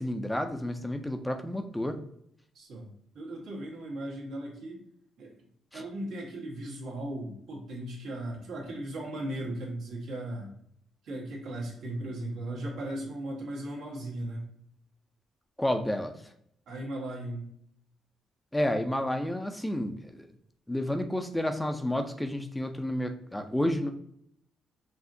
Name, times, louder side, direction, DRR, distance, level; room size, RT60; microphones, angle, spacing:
voice 1, 0.0-2.0 5.7-5.8 15.6-16.1 18.5-20.3 20.7-23.9, left 1 dB, 5° left, 6 dB, 0.5 m, -30 dB
voice 2, 2.5-2.9 3.1-4.8 5.2-5.3 5.7-10.5 11.0-14.5 16.7-17.5, right 1 dB, 75° right, -2 dB, 1.5 m, -37 dB
4.7 x 2.7 x 2.6 m, 0.70 s
cardioid pair, 90°, 0 cm